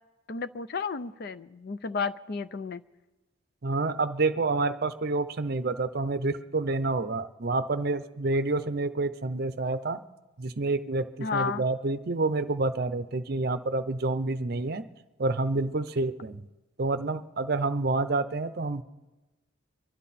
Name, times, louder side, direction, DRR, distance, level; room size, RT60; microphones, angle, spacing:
voice 1, 0.3-2.8 11.2-11.6, left 5 dB, 50° left, 14 dB, 0.5 m, -32 dB
voice 2, 3.6-10.0 10.4-14.9 15.2-16.4 16.8-18.8, right 3 dB, 50° right, 12 dB, 0.6 m, -28 dB
24.5 x 12.0 x 4.2 m, 1.1 s
head